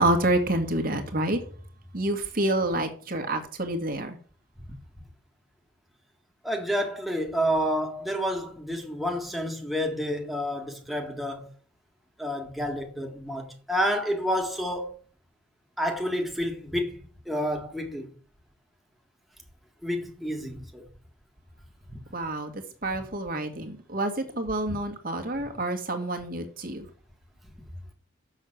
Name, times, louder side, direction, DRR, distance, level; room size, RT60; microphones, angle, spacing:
voice 1, 0.0-1.4 1.9-4.2 22.1-22.5 22.8-26.8, right 1 dB, 45° right, 1.8 m, -28 dB
voice 2, 6.4-11.5 12.2-14.9 15.8-17.0 17.2-18.1 19.8-20.9 21.9-22.0, equal, ahead, 1.6 m, -29 dB
7.2 x 6.6 x 7.7 m
head